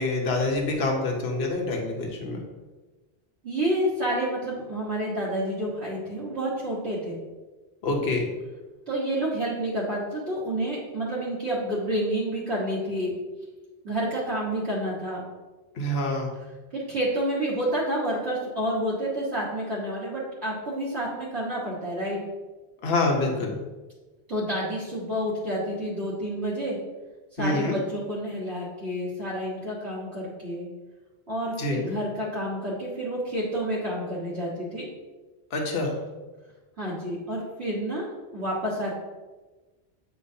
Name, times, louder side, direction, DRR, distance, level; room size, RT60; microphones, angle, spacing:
voice 1, 0.0-2.4 7.8-8.3 15.8-16.3 22.8-23.6 27.4-27.7 31.6-31.9 35.5-36.0, left 2 dB, 65° left, 1 dB, 1.1 m, -26 dB
voice 2, 3.4-7.2 8.9-13.1 13.8-15.2 16.7-22.2 24.3-26.8 27.3-30.7 31.3-34.9 36.8-38.9, right 1 dB, 70° right, -7 dB, 1.6 m, -29 dB
8.2 x 4.5 x 2.7 m, 1.2 s
omnidirectional pair, 1.1 m